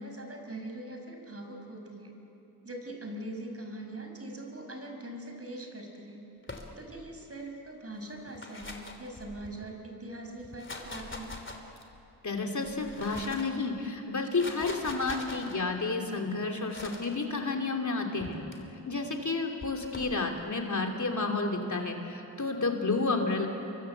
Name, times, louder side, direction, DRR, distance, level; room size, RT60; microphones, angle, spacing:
voice 1, 0.0-2.1 2.6-6.2 6.8-11.3, right 1 dB, 35° right, 3 dB, 5.7 m, -42 dB
sound 1, 6.4-7.1 8.1-9.7 10.4-12.0 12.6-13.6 14.2-15.6 16.7-17.1 18.2-18.6 19.6-20.2, left 2 dB, 30° left, 3.2 m, -43 dB
voice 2, 12.2-18.4 18.9-23.5, left 3 dB, 45° left, 2 dB, 3.1 m, -31 dB
28.0 x 23.5 x 8.1 m, 2.9 s
cardioid pair, 70°, 40 cm